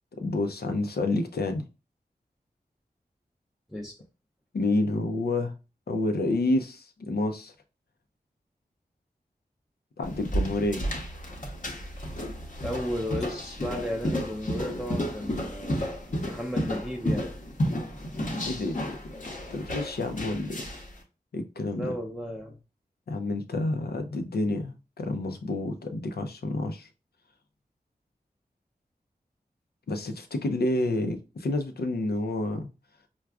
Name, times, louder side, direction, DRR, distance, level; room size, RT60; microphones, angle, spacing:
voice 1, 0.2-1.6 4.5-5.6 5.9-7.5 10.0-10.9 18.4-19.0 19.5-20.7 21.3-21.9 23.1-26.9 29.9-32.7, left 2 dB, 75° left, 7 dB, 0.6 m, -29 dB
sound 1, 10.0-20.9, equal, 50° left, 0.9 m, -32 dB
voice 2, 12.6-15.8 16.2-17.3 21.7-22.6, equal, ahead, 0 dB, 0.6 m, -34 dB
4.6 x 2.2 x 2.4 m, 0.31 s
cardioid pair, 45°, 16 cm